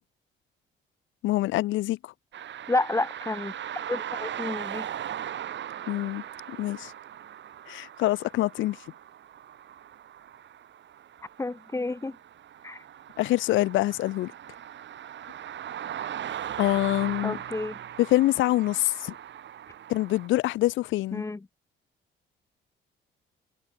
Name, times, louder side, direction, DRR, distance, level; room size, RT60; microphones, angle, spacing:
voice 1, 1.2-2.1 5.9-6.9 7.7-8.8 13.2-14.3 16.6-17.4 18.0-19.1 19.9-21.2, left 17 dB, 75° left, 0.4 m, -25 dB
sound 1, 2.3-20.3, right 10 dB, 65° right, 4.3 m, -39 dB
voice 2, 2.7-3.6 3.9-4.9 11.4-12.2 12.6-12.8 17.2-17.8 21.1-21.4, left 2 dB, 15° left, 0.6 m, -30 dB
cardioid pair, 90°, 20 cm